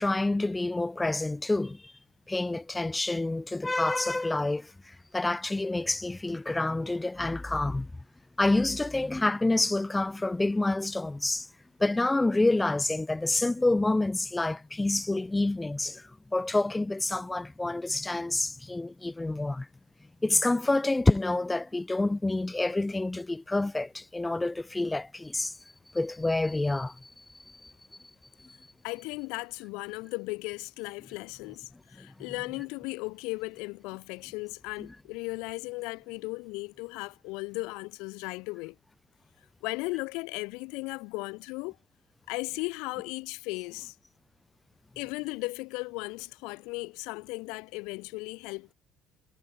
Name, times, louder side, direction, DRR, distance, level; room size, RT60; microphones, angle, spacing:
voice 1, 0.0-1.9 2.3-7.9 8.4-11.5 11.8-19.7 20.2-25.5 25.9-27.7 28.4-28.6 32.0-32.1, left 2 dB, 10° left, 0.8 m, -28 dB
voice 2, 28.8-38.8 39.6-41.8 42.3-43.9 45.0-48.7, left 26 dB, 85° left, 0.9 m, -36 dB
cardioid pair, 130°, 0 cm